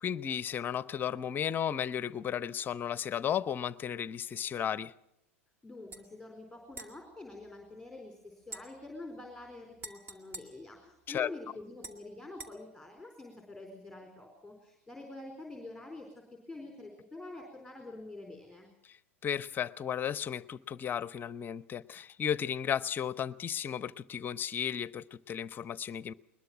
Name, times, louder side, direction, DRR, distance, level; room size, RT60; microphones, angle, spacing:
voice 1, 0.0-4.9 11.1-11.3 18.9-19.0 19.2-26.1, left 9 dB, 25° left, 18 dB, 0.7 m, -34 dB
voice 2, 5.6-18.7, left 2 dB, ahead, 3 dB, 4.2 m, -47 dB
sound 1, 5.9-6.1 6.7-8.0 8.4-11.3 11.8-12.5, right 2 dB, 30° right, 2.1 m, -50 dB
21.0 x 21.0 x 6.1 m, 0.80 s
figure-of-eight pair, 90°, 7 cm